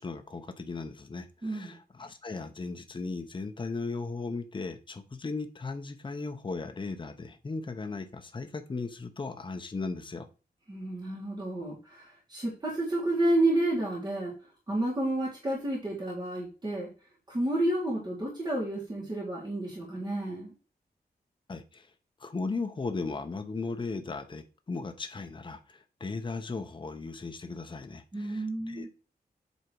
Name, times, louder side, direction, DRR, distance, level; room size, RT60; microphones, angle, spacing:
voice 1, 0.0-10.3 21.5-21.9 22.2-28.9, left 3 dB, 30° left, 0.7 m, -37 dB
voice 2, 1.4-1.7 10.7-14.3 14.7-16.9 17.3-20.5 28.1-28.9, right 1 dB, 25° right, 2.1 m, -30 dB
8.1 x 3.5 x 4.6 m
wide cardioid pair, 165°, 17 cm